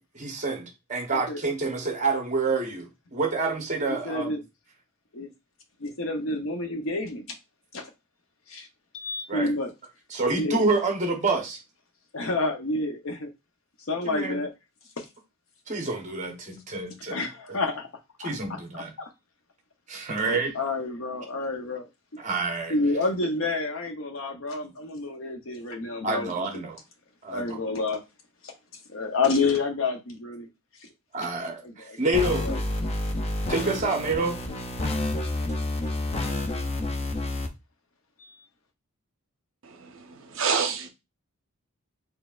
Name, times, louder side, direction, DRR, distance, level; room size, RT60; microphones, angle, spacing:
voice 1, 0.1-4.4 9.3-9.5 10.1-11.6 14.0-14.4 15.7-17.2 18.2-18.9 19.9-20.5 22.2-22.7 26.0-26.8 27.2-27.6 31.1-32.5 33.5-34.4, right 3 dB, 35° right, 0.9 m, -28 dB
voice 2, 3.9-4.4 5.1-5.3 5.8-7.2 7.7-7.9 8.5-8.7 8.9-9.7 10.4-10.6 12.1-13.3 13.9-14.5 15.0-15.1 17.1-17.9 18.2-18.4 18.7-19.1 20.3-22.2 22.7-26.3 27.3-28.0 28.4-28.5 28.9-30.5 31.6-32.0 32.4-32.6 38.2-38.3, left 3 dB, 65° left, 0.7 m, -29 dB
sound 1, 32.1-37.5, left 1 dB, 25° left, 0.4 m, -29 dB
voice 3, 40.3-40.9, right 6 dB, 60° right, 0.7 m, -26 dB
4.0 x 3.3 x 2.4 m
head